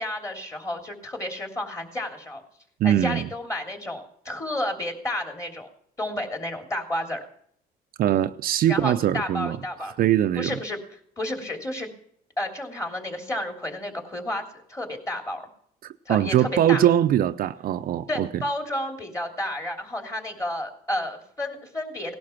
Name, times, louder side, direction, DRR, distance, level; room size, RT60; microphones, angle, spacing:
voice 1, 0.0-2.4 2.8-5.7 6.0-7.2 8.7-9.9 10.4-10.8 11.2-11.9 12.4-14.4 14.7-15.4 16.0-16.8 18.1-22.1, left 1 dB, 20° left, 3.2 m, -31 dB
voice 2, 2.8-3.3 8.0-9.6 9.9-10.6 15.8-18.4, right 11 dB, 60° right, 0.6 m, -22 dB
18.0 x 11.5 x 5.9 m
cardioid pair, 110°, 17 cm